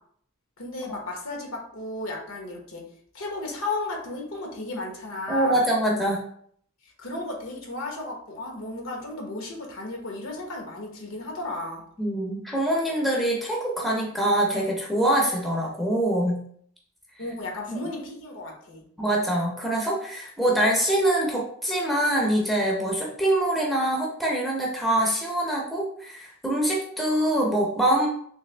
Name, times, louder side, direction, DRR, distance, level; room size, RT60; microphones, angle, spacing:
voice 1, 0.6-2.8 3.1-5.6 6.8-11.8 17.2-18.8, left 2 dB, 70° left, 0 dB, 1.1 m, -34 dB
voice 2, 5.3-6.2 12.0-16.4 17.7-17.8 19.0-28.1, right 1 dB, ahead, -3 dB, 0.6 m, -24 dB
3.3 x 3.3 x 3.3 m, 0.62 s
head